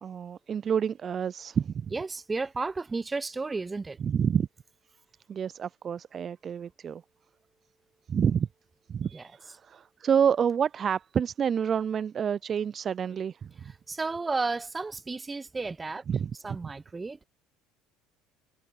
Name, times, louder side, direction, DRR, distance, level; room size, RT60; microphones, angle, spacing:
voice 1, 0.0-1.9 4.0-4.5 5.3-7.0 8.1-8.5 8.9-13.7 16.1-16.7, right 7 dB, 40° right, 0.4 m, -28 dB
voice 2, 1.9-4.0 9.1-9.2 13.9-16.0 16.4-17.2, right 3 dB, 20° right, 1.0 m, -32 dB
hypercardioid pair, 75°, 0 cm